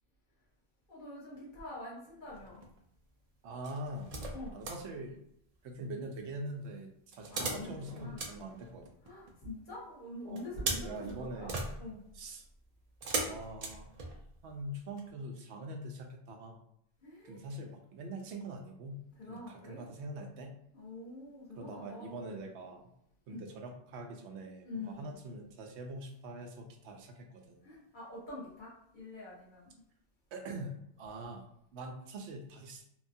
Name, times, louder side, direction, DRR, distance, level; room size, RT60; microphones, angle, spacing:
voice 1, 0.9-2.6 4.3-4.5 7.3-8.3 9.0-11.5 11.8-12.0 17.0-17.5 19.2-19.9 20.7-22.3 23.3-23.4 24.6-25.1 27.6-29.8, left 2 dB, 45° left, -6 dB, 1.2 m, -45 dB
sound 1, 2.3-2.8 3.6-4.8 7.1-9.3 10.4-14.5 15.0-15.1, right 3 dB, 55° right, 0.4 m, -39 dB
voice 2, 3.4-4.1 4.5-5.2 5.6-6.9 7.2-8.8 10.3-11.6 12.1-12.4 13.2-14.0 14.4-16.6 17.2-19.0 19.3-20.5 21.6-22.8 23.3-27.6 30.3-31.4 31.7-32.8, right 1 dB, 85° right, 3 dB, 0.9 m, -43 dB
3.0 x 2.2 x 2.6 m, 0.73 s
omnidirectional pair, 1.1 m